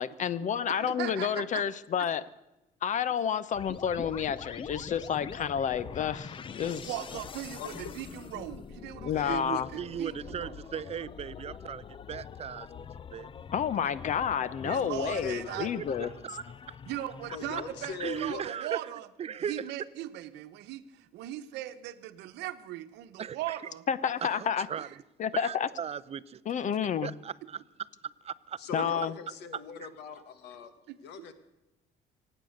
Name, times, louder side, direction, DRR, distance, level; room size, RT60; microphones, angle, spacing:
voice 1, 0.0-2.2 2.8-6.9 9.0-9.7 13.5-16.1 23.9-24.7 25.2-25.7 26.5-27.1 28.7-29.1, left 8 dB, 45° left, 0.9 m, -30 dB
voice 2, 0.7-1.6 6.9-10.6 14.6-15.7 16.9-19.1 19.5-23.8 24.8-24.9 30.9-31.3, right 14 dB, 85° right, 1.0 m, -39 dB
sound 1, 3.5-18.5, left 7 dB, 30° left, 0.5 m, -44 dB
voice 3, 7.6-8.1 10.7-10.8 15.0-15.7 17.3-18.4 28.6-30.7 31.0-31.3, left 5 dB, 85° left, 1.7 m, -41 dB
voice 4, 9.3-12.9 13.1-13.3 15.8-16.8 18.0-18.8 19.2-19.8 23.2-23.6 24.2-24.9 25.3-26.4 27.0-27.6 28.2-28.6 29.8-29.9, right 8 dB, 35° right, 0.5 m, -38 dB
24.5 x 9.1 x 6.5 m
cardioid pair, 110°, 17 cm